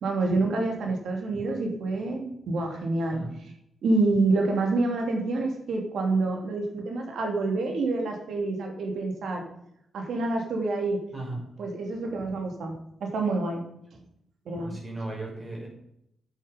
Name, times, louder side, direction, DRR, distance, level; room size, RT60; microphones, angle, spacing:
voice 1, 0.0-3.2 3.8-9.4 9.9-11.0 11.6-13.6 13.9-14.0 14.4-14.7, right 3 dB, 75° right, 2 dB, 3.0 m, -27 dB
voice 2, 14.6-15.7, right 2 dB, 25° right, -1 dB, 6.0 m, -36 dB
10.5 x 9.4 x 5.3 m, 0.76 s
cardioid pair, 110°, 0 cm